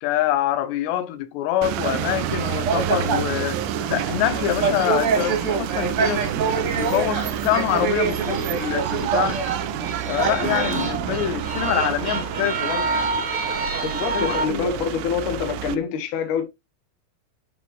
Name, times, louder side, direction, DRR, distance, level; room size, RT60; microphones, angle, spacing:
voice 1, 0.0-3.6 3.9-6.3 6.8-9.4 10.1-12.9 14.1-14.7, left 12 dB, 80° left, 2.8 m, -25 dB
sound 1, 1.6-15.8, right 12 dB, 85° right, 2.8 m, -30 dB
sound 2, 1.8-14.5, right 4 dB, 45° right, 1.9 m, -26 dB
voice 2, 13.8-16.4, left 6 dB, 60° left, 2.3 m, -25 dB
10.0 x 4.4 x 3.1 m
omnidirectional pair, 5.0 m